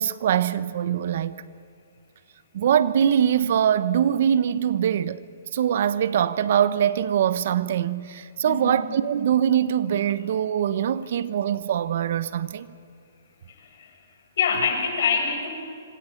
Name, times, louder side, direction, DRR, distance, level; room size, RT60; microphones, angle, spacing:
voice 1, 0.0-1.4 2.5-5.2 5.5-12.7, right 9 dB, 60° right, 1.0 m, -23 dB
voice 2, 8.4-8.8 13.5-14.0 14.4-15.5, left 6 dB, 65° left, 7.8 m, -25 dB
26.0 x 25.5 x 5.9 m
hypercardioid pair, 145°, 0 cm